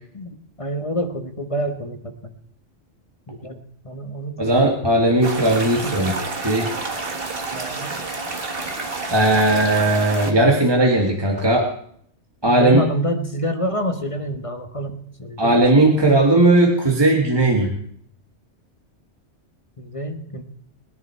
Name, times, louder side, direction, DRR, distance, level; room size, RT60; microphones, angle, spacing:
voice 1, 0.1-2.3 3.3-3.6 3.8-4.8 5.8-6.2 7.5-8.0 12.6-15.6 19.8-20.4, equal, 30° left, 6 dB, 1.2 m, -28 dB
voice 2, 4.4-6.7 9.1-11.7 12.4-12.8 15.4-17.7, right 2 dB, 20° right, 1 dB, 1.7 m, -17 dB
sound 1, 5.2-10.3, right 3 dB, 50° right, 1.8 m, -29 dB
21.0 x 10.5 x 4.5 m, 0.64 s
omnidirectional pair, 1.2 m